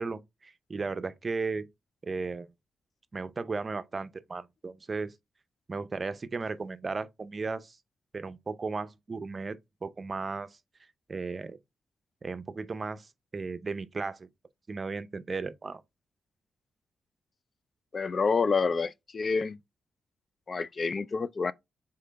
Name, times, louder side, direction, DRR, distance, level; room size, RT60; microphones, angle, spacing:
voice 1, 0.0-1.7 2.0-2.5 3.1-5.1 5.7-7.8 8.1-10.6 11.1-11.6 12.2-14.3 14.7-15.8, right 4 dB, 40° right, 0.5 m, -35 dB
voice 2, 17.9-19.6 20.5-21.5, left 4 dB, 45° left, 0.3 m, -28 dB
3.8 x 3.2 x 3.9 m
cardioid pair, 75°, 0 cm